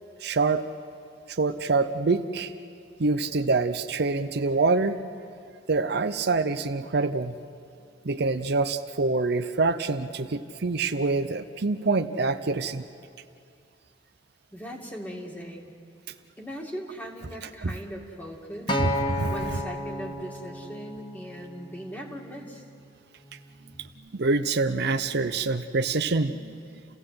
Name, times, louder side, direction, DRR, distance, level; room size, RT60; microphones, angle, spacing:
voice 1, 0.2-0.6 1.3-2.5 3.0-5.0 5.7-7.3 8.0-12.8 17.6-17.7 18.8-19.3 24.1-26.6, right 3 dB, 60° right, 9 dB, 0.7 m, -25 dB
voice 2, 14.5-15.7 16.4-18.9 19.3-22.6, equal, 10° left, 0 dB, 2.4 m, -39 dB
Acoustic guitar, 18.7-23.0 23.8-23.9, left 1 dB, 25° left, 1.5 m, -33 dB
29.0 x 16.5 x 7.8 m, 2.5 s
head